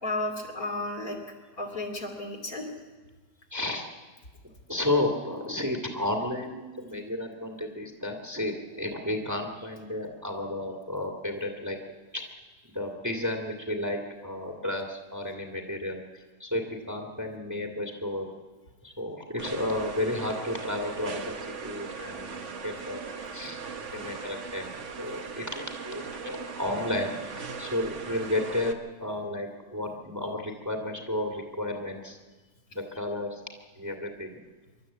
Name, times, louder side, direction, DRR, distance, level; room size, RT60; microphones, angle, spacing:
voice 1, 0.0-1.2 1.6-2.7, left 2 dB, 60° left, 1 dB, 3.5 m, -33 dB
voice 2, 3.5-3.8 4.7-11.8 12.1-12.2 12.7-18.3 18.8-21.4 21.6-23.0 23.3-23.6 23.9-24.7 25.0-28.7 29.0-32.2 32.7-33.4 33.8-34.3, left 1 dB, 10° right, 2 dB, 2.1 m, -32 dB
sound 1, 19.4-28.7, right 5 dB, 50° right, 1.5 m, -39 dB
26.0 x 12.5 x 8.5 m, 1.3 s
omnidirectional pair, 1.7 m